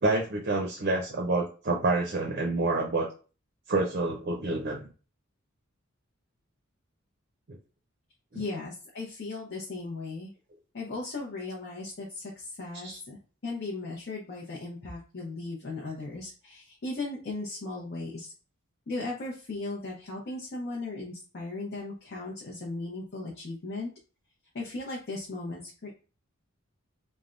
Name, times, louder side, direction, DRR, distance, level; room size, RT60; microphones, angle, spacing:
voice 1, 0.0-3.1 3.7-4.9 8.3-8.4 12.8-13.0, right 2 dB, 50° right, 1 dB, 0.5 m, -28 dB
voice 2, 8.3-10.3 10.7-13.2 13.4-18.3 18.9-23.9 24.5-25.9, left 2 dB, 50° left, -3 dB, 0.7 m, -37 dB
3.3 x 2.1 x 2.5 m, 0.36 s
head